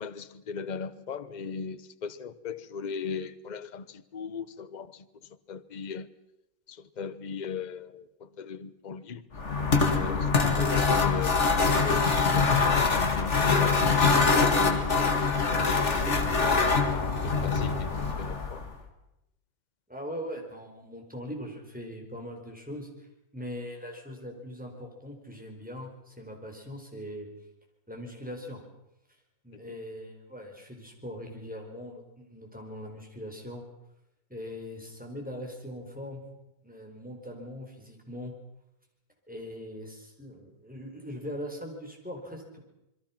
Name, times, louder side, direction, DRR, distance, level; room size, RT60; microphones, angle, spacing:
voice 1, 0.0-4.9 5.5-6.1 7.0-8.1 8.4-9.2 9.6-10.3 10.6-11.5 11.7-12.5 12.9-14.0 14.5-15.1 15.4-15.5 15.9-16.2 17.2-18.6, left 5 dB, 60° left, 0.4 m, -38 dB
sound 1, 9.3-18.7, left 4 dB, 35° left, 2.3 m, -24 dB
voice 2, 19.9-22.9 23.3-27.3 27.9-28.6 29.4-33.6 34.3-36.2 36.6-38.3 39.3-42.6, equal, 5° right, 4.5 m, -41 dB
27.0 x 22.5 x 5.9 m
omnidirectional pair, 2.1 m